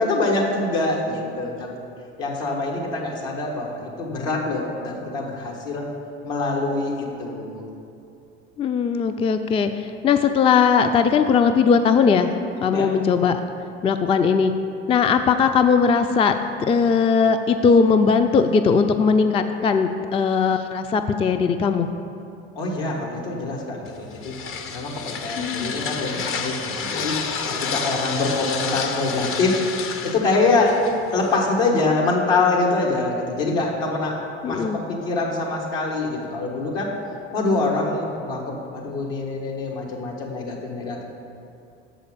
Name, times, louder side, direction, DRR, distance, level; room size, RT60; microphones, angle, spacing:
voice 1, 0.0-1.7 2.2-5.9 6.2-7.7 12.7-12.9 22.5-24.4 24.7-27.2 27.5-29.7 30.0-30.8 31.1-36.9 37.3-41.0, left 3 dB, 70° left, -2 dB, 1.5 m, -24 dB
voice 2, 8.6-12.3 12.6-13.4 13.8-14.5 14.9-16.3 16.7-21.9 25.4-25.8 34.4-34.8, left 5 dB, 20° left, 8 dB, 0.3 m, -19 dB
sound 1, 23.9-31.4, left 5 dB, 45° left, 0.8 m, -30 dB
6.5 x 5.0 x 6.8 m, 2.5 s
hypercardioid pair, 65°, 30 cm